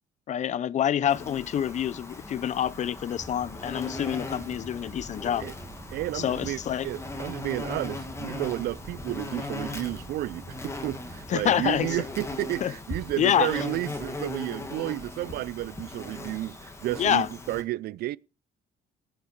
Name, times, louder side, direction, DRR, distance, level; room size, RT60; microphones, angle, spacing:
voice 1, 0.3-5.5 6.1-6.9 11.3-11.9 12.6-12.7 13.2-13.5 17.0-17.3, left 10 dB, 45° left, 0.6 m, -27 dB
Insect, 1.1-17.6, left 2 dB, 15° left, 2.1 m, -39 dB
sound 1, 3.1-12.1, right 1 dB, 20° right, 3.4 m, -46 dB
voice 2, 5.9-18.2, right 16 dB, 70° right, 0.5 m, -32 dB
17.5 x 8.7 x 3.2 m
cardioid pair, 110°, 17 cm